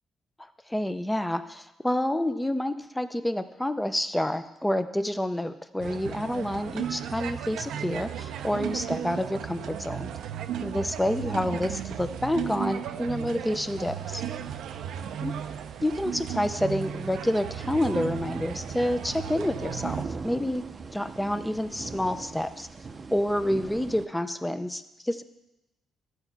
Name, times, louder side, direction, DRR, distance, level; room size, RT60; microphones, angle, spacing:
voice 1, 0.7-10.1 10.6-14.2 15.2-15.3 15.8-20.6 20.9-22.7 23.1-25.2, left 1 dB, 5° left, 10 dB, 0.5 m, -28 dB
sound 1, 5.8-20.1, right 9 dB, 80° right, 0.5 m, -35 dB
sound 2, 13.4-24.1, right 4 dB, 35° right, 0.6 m, -42 dB
11.5 x 4.4 x 5.9 m, 0.95 s
cardioid pair, 90°, 0 cm